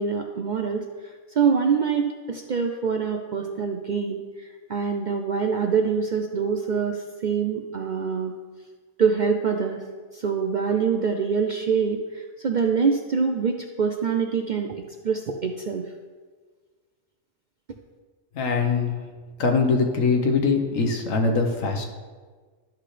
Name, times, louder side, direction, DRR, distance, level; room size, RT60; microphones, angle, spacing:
voice 1, 0.0-8.3 9.0-9.8 10.1-15.8, right 6 dB, 60° right, 4 dB, 0.5 m, -25 dB
voice 2, 18.3-19.0 19.4-21.9, left 4 dB, 85° left, 3 dB, 1.5 m, -22 dB
12.0 x 5.8 x 3.3 m, 1.4 s
omnidirectional pair, 1.3 m